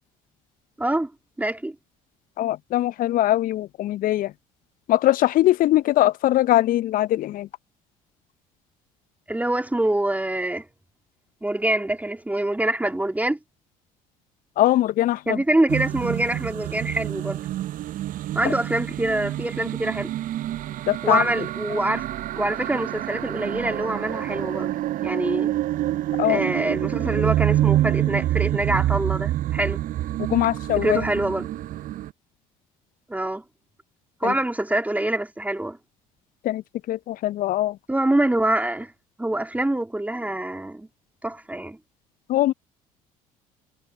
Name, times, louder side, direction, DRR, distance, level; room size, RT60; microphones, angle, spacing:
voice 1, 0.8-1.1 1.4-1.8 9.3-10.7 11.4-13.4 15.3-17.4 18.3-20.1 21.0-22.1 22.4-24.7 25.0-25.5 26.2-29.8 30.8-31.5 33.1-33.4 34.2-35.8 37.9-38.9 39.2-40.9 41.2-41.8, right 1 dB, 10° right, 3.7 m, -25 dB
voice 2, 2.4-4.3 4.9-7.5 14.6-15.4 20.9-21.2 26.2-26.4 30.3-31.0 34.2-34.3 36.4-36.6 36.9-37.7 42.3-42.5, left 14 dB, 50° left, 1.2 m, -21 dB
sound 1, 15.7-32.1, right 14 dB, 50° right, 1.0 m, -27 dB
figure-of-eight pair, 55°, 18 cm